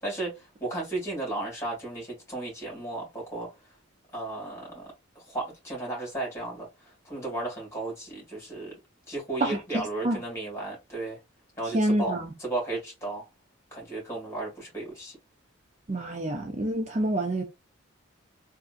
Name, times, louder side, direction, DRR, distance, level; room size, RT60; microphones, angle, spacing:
voice 1, 0.0-3.5 4.1-4.9 5.3-8.7 9.1-11.2 11.6-13.2 13.7-15.2, right 2 dB, 15° left, 2.2 m, -34 dB
voice 2, 11.7-12.3 15.9-17.4, right 1 dB, 35° right, 0.5 m, -27 dB
3.6 x 2.6 x 2.4 m
head